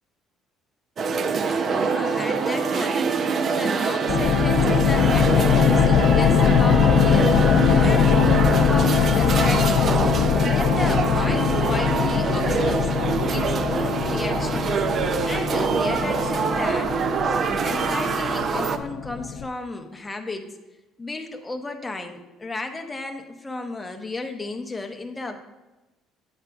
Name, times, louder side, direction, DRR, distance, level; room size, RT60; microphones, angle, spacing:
sound 1, 1.0-18.8, right 5 dB, 35° right, 0.4 m, -25 dB
voice 1, 1.5-10.0 10.4-12.9 13.3-14.8 15.2-17.0 17.3-20.5 21.0-25.4, left 3 dB, 10° left, 4 dB, 0.7 m, -33 dB
sound 2, 4.1-19.5, left 7 dB, 55° left, 0.3 m, -21 dB
8.8 x 8.0 x 2.3 m, 1.1 s
cardioid pair, 150°, 0 cm